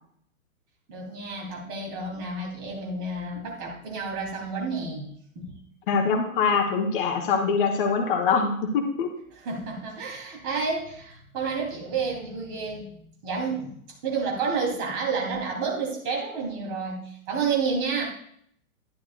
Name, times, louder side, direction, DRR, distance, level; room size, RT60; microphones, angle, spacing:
voice 1, 0.9-5.1 5.3-5.5 9.4-13.7 14.0-18.0, right 4 dB, 35° right, -1 dB, 3.3 m, -30 dB
voice 2, 5.9-9.1, left 5 dB, 40° left, 3 dB, 1.2 m, -24 dB
11.0 x 11.0 x 2.5 m, 0.67 s
figure-of-eight pair, 120°, 42 cm